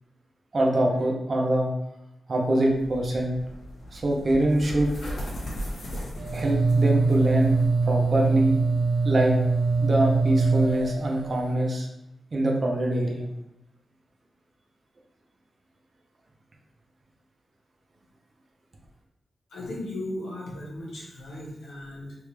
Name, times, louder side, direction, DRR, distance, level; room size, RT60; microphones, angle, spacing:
voice 1, 0.5-1.7 2.3-3.4 3.9-4.9 6.3-7.5 7.8-8.6 9.0-9.4 9.8-11.9 12.3-13.2, right 1 dB, 35° right, 0 dB, 0.6 m, -24 dB
sound 1, 2.7-7.7, equal, 55° left, 1.1 m, -37 dB
sound 2, 6.2-11.5, right 4 dB, 75° right, 0.6 m, -23 dB
voice 2, 19.5-22.2, left 1 dB, 90° left, -5 dB, 1.4 m, -36 dB
3.2 x 3.0 x 3.3 m, 0.89 s
wide cardioid pair, 170°, 0 cm